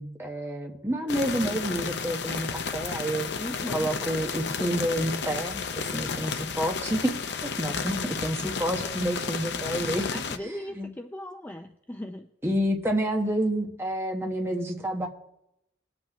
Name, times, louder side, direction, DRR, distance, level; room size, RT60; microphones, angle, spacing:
voice 1, 0.0-3.3 3.7-7.0 7.6-10.0 10.8-10.9 12.4-15.1, equal, 15° right, 2 dB, 1.2 m, -29 dB
sound 1, 1.1-10.4, left 5 dB, 65° left, 0.6 m, -32 dB
voice 2, 3.4-3.9 10.1-12.3, equal, 10° left, 4 dB, 0.4 m, -38 dB
20.0 x 7.8 x 3.0 m, 0.84 s
head